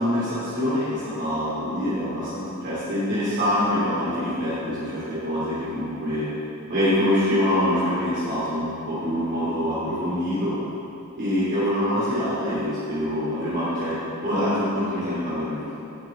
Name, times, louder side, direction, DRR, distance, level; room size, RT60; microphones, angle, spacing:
voice 1, 0.0-6.3 6.7-10.6 11.1-15.8, left 1 dB, 55° right, -11 dB, 3.2 m, -25 dB
18.5 x 8.8 x 3.9 m, 2.8 s
head